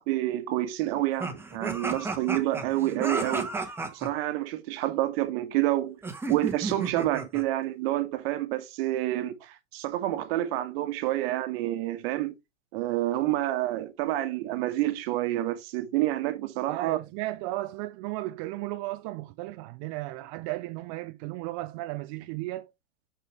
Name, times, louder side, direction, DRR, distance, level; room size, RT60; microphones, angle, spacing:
voice 1, 0.0-3.5 3.9-6.0 6.3-12.3 12.7-17.0, right 15 dB, 50° right, 1.3 m, -28 dB
sound 1, 1.2-4.1 6.0-7.4, right 3 dB, 5° right, 1.1 m, -33 dB
voice 2, 16.7-22.7, right 18 dB, 30° right, 0.4 m, -35 dB
6.6 x 5.9 x 3.1 m
figure-of-eight pair, 95°, 39 cm